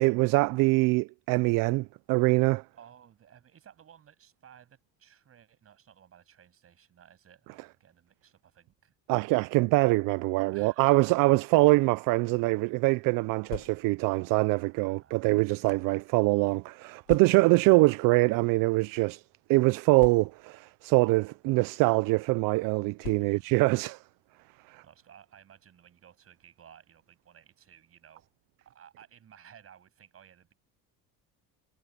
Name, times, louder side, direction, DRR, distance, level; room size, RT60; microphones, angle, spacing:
voice 1, 0.0-2.6 9.1-19.2 19.5-24.0 24.7-24.8, right 23 dB, 65° right, 0.5 m, -24 dB
voice 2, 2.8-8.9 10.5-11.5 12.3-12.6 14.5-15.4 23.1-23.6 24.8-28.3 28.6-30.5, right 9 dB, 40° right, 7.7 m, -56 dB
sound 1, 13.3-14.1 14.9-15.9 17.1-17.7 18.5-18.7 19.0-19.1 20.0-20.6 21.5-21.7 23.0-23.6, left 24 dB, 90° left, 0.7 m, -43 dB
cardioid pair, 130°, 36 cm